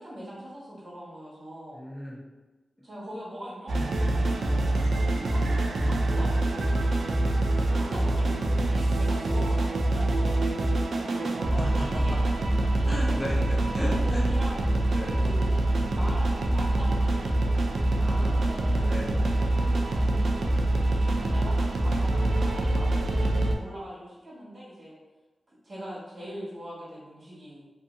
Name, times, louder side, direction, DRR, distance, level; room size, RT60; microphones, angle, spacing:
voice 1, 0.0-1.8 2.8-4.8 5.2-10.7 11.1-11.7 12.0-12.2 13.1-13.2 13.4-13.6 14.0-14.8 15.2-15.5 15.9-17.7 18.7-18.9 19.6-24.9 25.6-27.6, equal, 45° right, -9 dB, 1.4 m, -42 dB
voice 2, 1.7-2.2 7.4-8.1 11.6-14.3 14.9-15.2 18.0-19.4, equal, 5° left, -5 dB, 0.8 m, -37 dB
sound 1, 3.7-23.5, right 1 dB, 75° right, 0.3 m, -25 dB
2.6 x 2.6 x 2.5 m, 1.1 s
wide cardioid pair, 100°, 0 cm